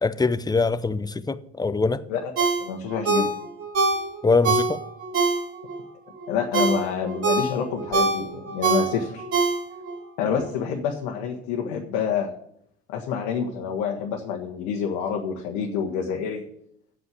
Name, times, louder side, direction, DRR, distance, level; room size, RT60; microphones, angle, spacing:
voice 1, 0.0-2.0 4.2-4.8, left 4 dB, 10° left, 0.7 m, -23 dB
Ringtone, 2.4-5.8 6.2-10.0 10.4-10.5, right 3 dB, 45° right, 3.3 m, -24 dB
voice 2, 2.6-3.3 6.3-9.3 10.2-12.3 12.9-16.4, left 6 dB, 70° left, 1.4 m, -27 dB
8.1 x 7.6 x 8.5 m
hypercardioid pair, 60°, 32 cm